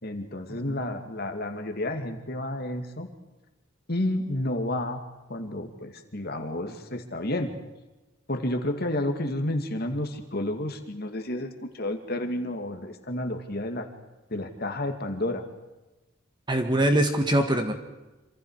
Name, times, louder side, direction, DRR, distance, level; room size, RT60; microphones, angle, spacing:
voice 1, 0.0-3.1 3.9-5.0 5.3-7.6 8.3-13.9 14.3-15.5, left 1 dB, 50° left, 5 dB, 2.4 m, -31 dB
voice 2, 16.5-17.7, right 1 dB, 20° right, 5 dB, 2.0 m, -23 dB
27.0 x 26.5 x 5.0 m, 1.1 s
head